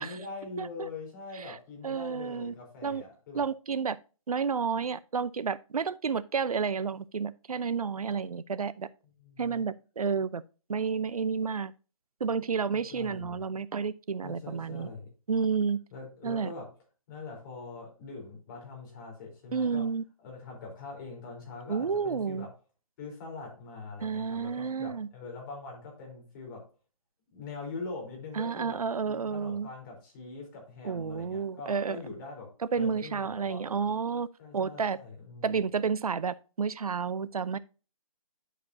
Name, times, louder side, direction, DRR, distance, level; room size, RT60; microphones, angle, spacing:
voice 1, 0.0-3.5 8.1-8.2 9.2-9.6 12.7-13.4 14.2-15.1 15.9-16.7 17.1-19.9 20.2-22.5 23.0-26.7 27.3-33.9 34.4-35.5, left 3 dB, 35° left, 3.9 m, -43 dB
voice 2, 0.6-0.9 1.4-1.6 1.8-2.5 2.8-3.0 3.3-4.0 4.3-8.9 9.4-10.4 10.7-11.7 12.2-14.9 15.3-15.8 16.2-16.5 19.5-20.0 21.7-22.5 24.0-25.1 28.4-29.7 30.8-32.0 32.7-34.3 34.5-35.0 35.4-37.6, right 5 dB, 85° right, 0.6 m, -31 dB
11.0 x 5.1 x 2.7 m
hypercardioid pair, 150°, 18 cm